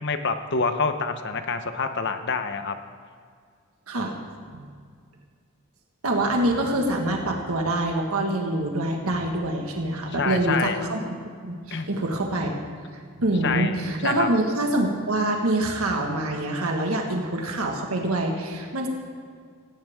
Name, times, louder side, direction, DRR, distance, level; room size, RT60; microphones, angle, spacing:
voice 1, 0.0-2.8 10.2-10.8 11.7-11.9 13.4-13.7 14.0-14.3, left 4 dB, 55° left, 8 dB, 0.9 m, -26 dB
voice 2, 6.0-11.1 11.4-12.6 13.2-18.9, right 1 dB, 80° right, 1 dB, 1.7 m, -25 dB
18.0 x 15.5 x 3.7 m, 2.1 s
head